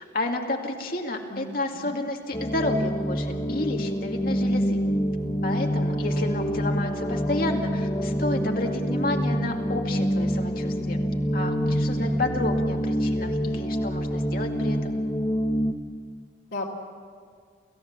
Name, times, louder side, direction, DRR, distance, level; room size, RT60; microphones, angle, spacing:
voice 1, 0.0-4.8 5.4-11.0 11.3-15.0, left 2 dB, 50° left, 2 dB, 2.2 m, -31 dB
voice 2, 1.3-2.0 6.1-6.2 11.9-12.4 16.5-16.7, left 2 dB, 80° left, -5 dB, 2.5 m, -37 dB
sound 1, 2.3-15.7, equal, 25° left, 0.9 m, -26 dB
29.0 x 15.5 x 7.3 m, 2.1 s
head